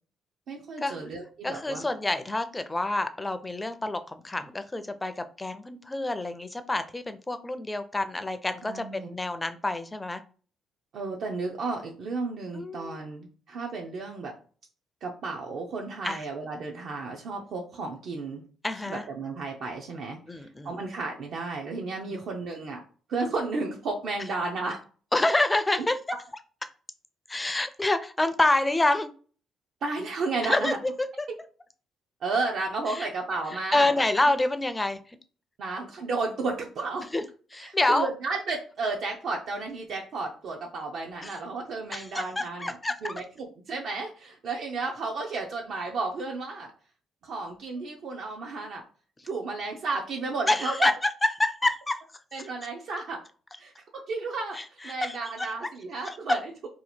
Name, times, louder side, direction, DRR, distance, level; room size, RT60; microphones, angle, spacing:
voice 1, 0.5-1.8 8.6-9.2 10.9-14.3 15.0-18.4 18.9-22.8 23.1-24.8 29.8-30.8 32.2-33.9 35.6-37.1 37.6-42.8 43.0-46.7 47.2-48.8 49.2-50.9 52.3-53.2 53.6-56.5, right 3 dB, 65° right, 0 dB, 0.5 m, -33 dB
voice 2, 1.4-10.2 12.5-13.0 16.0-16.2 18.6-19.0 20.3-20.7 22.1-22.2 25.1-26.0 27.3-29.1 30.4-31.3 32.9-33.1 33.7-35.0 37.1-37.2 37.5-38.1 41.2-41.3 41.9-43.2 50.5-50.9 51.2-51.9 54.6-55.5 56.3-56.4, left 2 dB, 15° left, 10 dB, 0.4 m, -27 dB
2.8 x 2.4 x 4.2 m, 0.40 s
cardioid pair, 110°, 0 cm